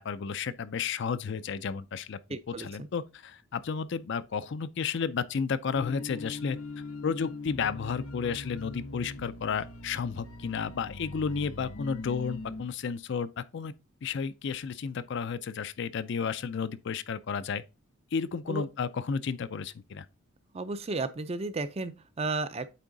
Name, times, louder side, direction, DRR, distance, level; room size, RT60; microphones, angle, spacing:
voice 1, 0.0-2.2 2.5-6.6 7.0-13.7 14.0-17.6 18.1-20.1, left 6 dB, 55° left, 0.4 m, -32 dB
voice 2, 2.3-2.9 18.5-18.7 20.5-22.7, right 3 dB, 30° right, 0.4 m, -33 dB
sound 1, 5.7-12.6, left 2 dB, 85° left, 1.0 m, -41 dB
8.4 x 3.5 x 3.9 m
head